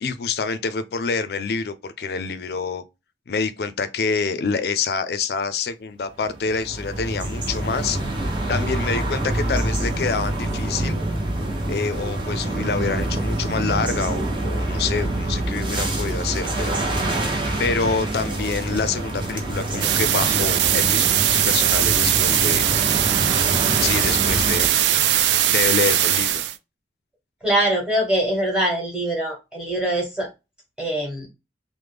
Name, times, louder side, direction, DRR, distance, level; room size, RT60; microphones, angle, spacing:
voice 1, 0.0-2.8 3.3-11.0 11.7-22.7 23.8-25.0 25.5-26.4, left 5 dB, 65° left, 0.4 m, -27 dB
sound 1, 6.2-24.7, right 1 dB, 25° right, 0.6 m, -26 dB
sound 2, 19.8-26.6, right 12 dB, 80° right, 0.3 m, -20 dB
voice 2, 27.4-30.3 30.8-31.3, right 1 dB, 5° right, 1.2 m, -23 dB
3.2 x 2.0 x 3.3 m
head